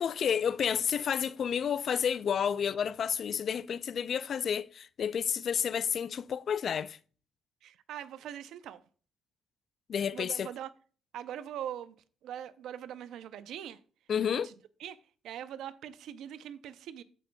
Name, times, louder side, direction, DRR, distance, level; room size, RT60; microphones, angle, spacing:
voice 1, 0.0-7.0 9.9-10.5 14.1-14.5, left 8 dB, 55° left, 0.3 m, -30 dB
voice 2, 7.6-8.8 10.1-10.7 11.1-11.9 12.2-13.8 14.3-14.5 14.8-15.0 15.2-17.0, right 10 dB, 80° right, 0.5 m, -42 dB
14.5 x 5.2 x 2.2 m
cardioid pair, 90°, 0 cm